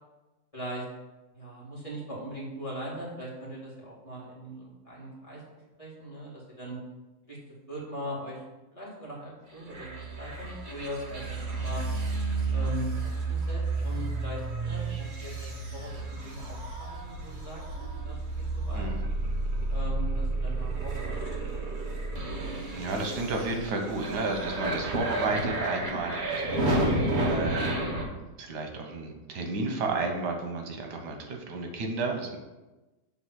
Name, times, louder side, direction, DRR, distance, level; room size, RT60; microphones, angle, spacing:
voice 1, 0.5-0.8 1.3-5.4 5.8-6.8 7.3-7.4 7.7-8.4 8.7-11.8 12.5-17.6 18.0-18.9 19.7-21.2 21.4-21.7 25.2-25.4, right 1 dB, 20° left, -6 dB, 2.1 m, -40 dB
sound 1, 9.7-28.0, right 2 dB, 35° right, 1.1 m, -31 dB
voice 2, 22.7-27.7 28.0-32.4, right 3 dB, 85° right, 3 dB, 1.6 m, -32 dB
6.9 x 3.6 x 6.2 m, 1.1 s
omnidirectional pair, 1.8 m